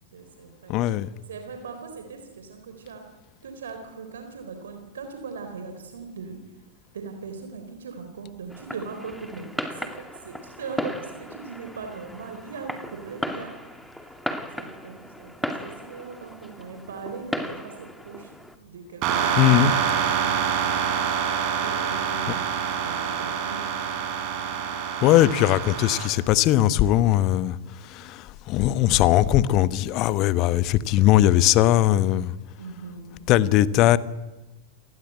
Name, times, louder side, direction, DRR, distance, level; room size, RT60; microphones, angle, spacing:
voice 1, 0.1-0.8 1.3-3.0 3.4-6.4 6.9-9.9 10.2-14.2 14.5-18.3 18.6-19.6 20.1-20.8 21.6-23.6 32.6-33.5, right 5 dB, 65° right, 6 dB, 3.9 m, -39 dB
voice 2, 0.7-1.1 19.3-19.7 25.0-27.6 27.9-32.3 33.3-34.0, left 13 dB, 40° left, 16 dB, 1.2 m, -20 dB
Fireworks, 8.5-18.6, equal, ahead, 2.5 m, -36 dB
sound 1, 19.0-26.1, right 7 dB, 40° right, 4.7 m, -26 dB
27.5 x 19.5 x 8.9 m, 1.1 s
figure-of-eight pair, 90°, 0 cm